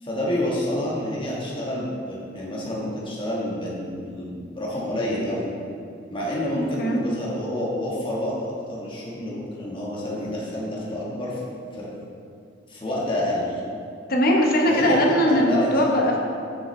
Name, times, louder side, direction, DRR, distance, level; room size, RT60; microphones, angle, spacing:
voice 1, 0.0-5.4 6.1-11.4 11.7-11.9 12.7-13.6 14.6-16.0, left 1 dB, 25° left, -5 dB, 1.4 m, -28 dB
voice 2, 6.5-7.0 14.1-16.2, equal, 50° left, 0 dB, 0.9 m, -20 dB
7.1 x 6.2 x 3.2 m, 2.5 s
head